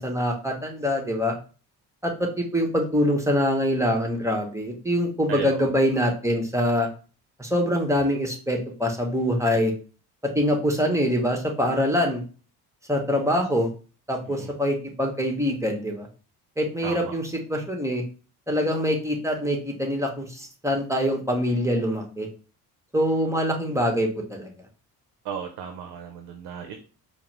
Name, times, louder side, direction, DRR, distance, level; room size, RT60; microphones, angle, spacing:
voice 1, 0.0-1.3 2.0-6.9 7.4-9.7 10.3-12.2 12.9-13.7 14.1-16.1 16.6-18.0 18.5-22.3 22.9-24.5, equal, 5° right, 1 dB, 1.1 m, -24 dB
voice 2, 5.3-5.7 14.2-14.5 16.8-17.1 25.2-26.8, right 7 dB, 55° right, 5 dB, 0.7 m, -35 dB
4.7 x 2.1 x 3.2 m, 0.36 s
hypercardioid pair, 45°, 48 cm